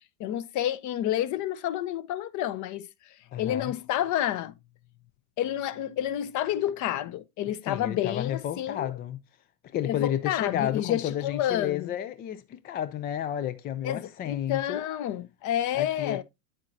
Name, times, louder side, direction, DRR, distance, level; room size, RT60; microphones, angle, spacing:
voice 1, 0.2-2.9 3.4-4.5 5.4-8.9 9.9-11.9 13.8-16.2, left 12 dB, 40° left, 0.8 m, -29 dB
voice 2, 3.3-3.7 7.6-9.2 9.7-14.8 15.7-16.2, left 10 dB, 25° left, 0.3 m, -31 dB
9.1 x 7.5 x 2.6 m
hypercardioid pair, 85°, 45 cm